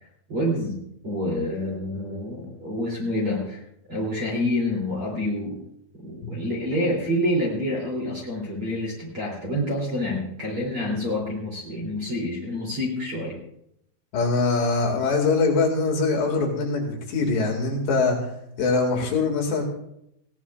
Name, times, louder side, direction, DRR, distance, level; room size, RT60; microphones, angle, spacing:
voice 1, 0.3-3.6 3.9-5.6 6.0-13.4, left 1 dB, 35° right, -4 dB, 3.0 m, -27 dB
voice 2, 14.1-18.3 18.6-19.7, left 3 dB, 65° left, 0 dB, 3.9 m, -23 dB
19.5 x 16.5 x 2.4 m, 0.77 s
omnidirectional pair, 5.6 m